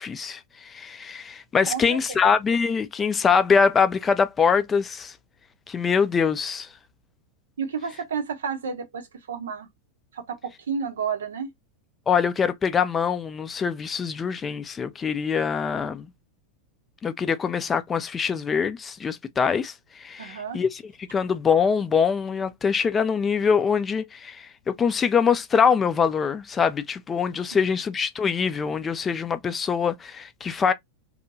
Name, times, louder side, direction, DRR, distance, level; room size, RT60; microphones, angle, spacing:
voice 1, 0.0-5.1 5.7-6.7 12.1-16.1 17.0-20.8 21.1-30.7, left 6 dB, 20° left, 0.4 m, -24 dB
voice 2, 1.7-2.2 7.6-9.7 10.1-11.5 20.2-20.6 27.5-27.7, right 6 dB, 65° right, 0.7 m, -31 dB
2.7 x 2.2 x 2.6 m
figure-of-eight pair, 90°, 0 cm